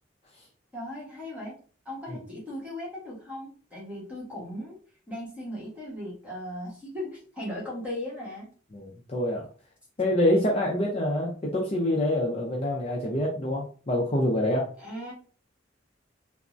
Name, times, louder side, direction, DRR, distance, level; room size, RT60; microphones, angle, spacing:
voice 1, 0.7-1.5 1.8-4.8 5.1-8.5 14.8-15.1, left 1 dB, 5° right, -6 dB, 1.1 m, -37 dB
voice 2, 8.7-9.5 10.0-14.7, left 1 dB, 35° left, -2 dB, 0.5 m, -26 dB
3.5 x 2.0 x 2.5 m, 0.41 s
head